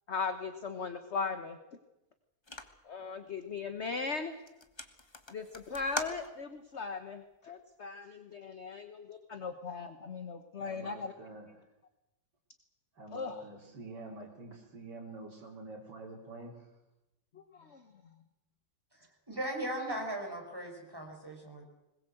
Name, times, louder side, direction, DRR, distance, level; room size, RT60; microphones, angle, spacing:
voice 1, 0.1-1.6 2.8-4.4 5.3-11.1 13.1-13.4 17.3-17.8, left 5 dB, 40° left, 8 dB, 1.3 m, -38 dB
sound 1, 2.4-2.9 3.5-3.8 4.1-4.2 4.5-6.7, left 2 dB, 15° left, 1.2 m, -43 dB
voice 2, 10.6-11.5 13.0-16.7, right 2 dB, 55° right, -1 dB, 4.8 m, -47 dB
voice 3, 18.9-21.6, right 1 dB, 10° right, 0 dB, 5.2 m, -38 dB
21.0 x 21.0 x 7.8 m, 0.94 s
omnidirectional pair, 2.2 m